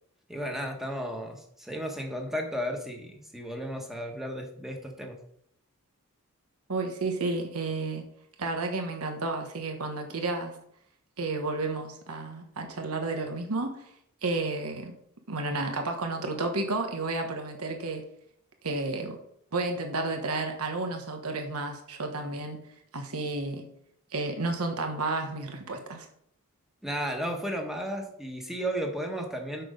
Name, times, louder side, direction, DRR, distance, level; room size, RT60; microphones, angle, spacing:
voice 1, 0.3-5.2 26.8-29.6, equal, ahead, 2 dB, 1.2 m, -34 dB
voice 2, 6.7-8.0 8.4-10.5 11.2-13.8 14.2-14.9 15.3-18.0 18.6-19.2 19.5-22.6 22.9-23.6 24.1-26.1, right 3 dB, 80° right, 4 dB, 1.2 m, -31 dB
6.7 x 6.2 x 5.1 m, 0.70 s
head